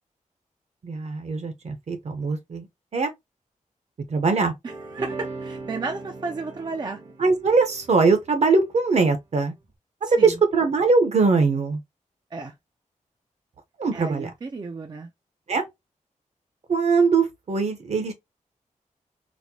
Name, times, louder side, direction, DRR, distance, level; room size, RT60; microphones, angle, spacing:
voice 1, 0.8-2.7 2.9-3.1 4.1-4.5 7.2-9.5 10.0-11.8 13.8-14.3 15.5-15.6 16.7-18.1, right 4 dB, 55° right, 0.8 m, -21 dB
voice 2, 4.6-7.0 10.0-10.3 12.3-12.5 13.9-15.1, right 3 dB, 30° right, 0.4 m, -33 dB
sound 1, 4.6-8.8 9.6-9.7, right 3 dB, 70° right, 1.9 m, -39 dB
4.2 x 2.1 x 2.8 m
wide cardioid pair, 150°, 13 cm